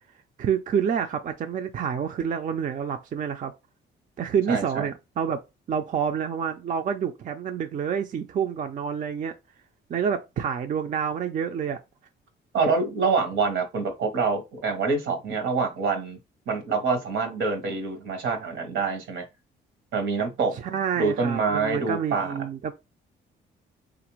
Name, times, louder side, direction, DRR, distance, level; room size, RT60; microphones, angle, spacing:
voice 1, 0.4-3.5 4.2-5.4 5.7-9.3 9.9-11.8 20.6-22.7, right 7 dB, 40° right, 0.4 m, -28 dB
voice 2, 4.5-4.8 12.5-16.2 16.5-19.2 19.9-20.6 21.0-22.3, right 4 dB, 80° right, 1.1 m, -26 dB
3.2 x 2.5 x 3.0 m
cardioid pair, 90°, 20 cm